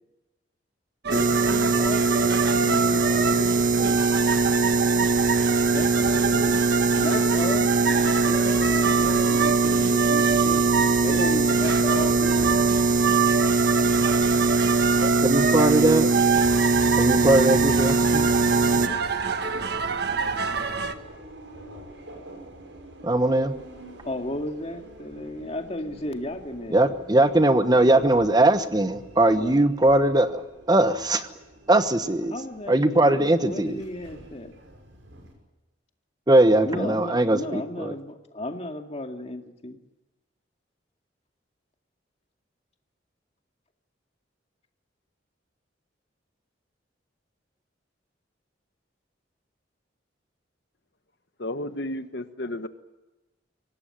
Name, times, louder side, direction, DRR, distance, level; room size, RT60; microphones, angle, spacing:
sound 1, 1.0-20.9, right 5 dB, 60° right, 1.4 m, -27 dB
voice 1, 1.1-4.1 5.7-6.6 7.0-12.8 24.0-26.9 29.3-29.7 32.3-34.5 36.6-39.8, left 1 dB, 35° left, 5 dB, 2.2 m, -34 dB
sound 2, 1.1-18.9, right 3 dB, 45° right, 0.9 m, -22 dB
voice 2, 15.0-16.1 17.0-18.3 23.0-23.5 26.7-30.4 30.7-31.3 31.7-32.3 32.7-33.8 36.3-37.9, right 1 dB, 20° right, 10 dB, 1.1 m, -20 dB
Subway metro underground, 18.1-35.3, right 1 dB, 85° right, 6.3 m, -45 dB
voice 3, 51.4-52.7, left 1 dB, 65° left, 10 dB, 1.2 m, -32 dB
24.0 x 18.5 x 8.9 m, 1.1 s
head